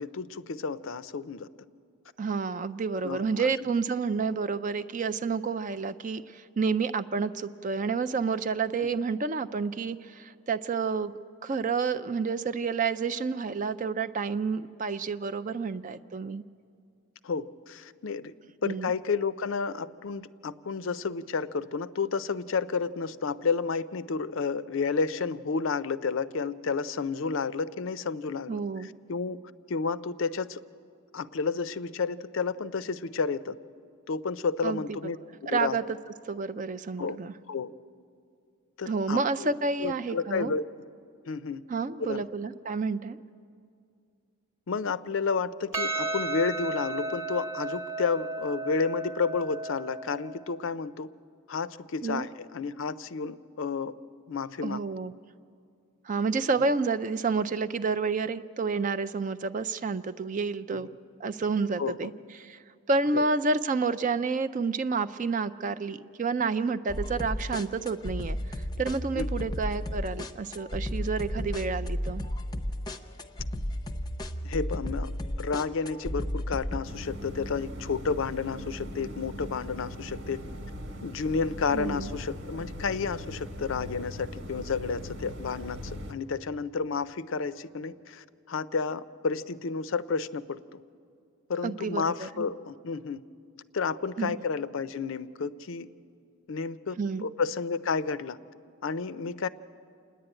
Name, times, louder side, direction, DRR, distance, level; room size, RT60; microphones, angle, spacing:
voice 1, 0.0-1.5 3.0-3.5 17.2-18.3 18.6-30.6 31.1-33.6 34.1-35.2 35.4-35.8 37.0-37.2 37.5-37.7 38.8-39.5 39.8-40.6 41.3-41.6 42.0-42.2 44.7-51.1 51.5-53.9 54.3-54.8 56.6-56.7 60.7-60.8 61.8-62.1 63.1-63.3 69.2-69.5 74.4-75.1 75.4-80.4 81.0-90.8 91.5-93.2 93.7-95.9 96.5-98.4 98.8-99.5, left 5 dB, 60° left, 14 dB, 0.5 m, -31 dB
voice 2, 2.2-11.1 11.4-16.4 18.6-18.9 28.5-28.9 34.6-34.8 35.5-36.0 36.3-37.3 38.9-40.5 41.7-43.2 52.0-52.3 54.6-55.1 56.0-60.9 61.2-62.1 62.4-62.6 62.9-68.4 68.8-72.2 81.7-82.1 91.6-92.5 94.2-94.4 97.0-97.3, right 4 dB, 35° right, 12 dB, 0.4 m, -29 dB
Percussion, 45.7-50.4, right 3 dB, 10° right, 0.8 m, -34 dB
sound 1, 66.9-76.8, equal, 20° left, 0.6 m, -33 dB
sound 2, 76.8-86.1, left 1 dB, 70° right, 1.4 m, -40 dB
28.0 x 10.5 x 8.9 m, 2.4 s
head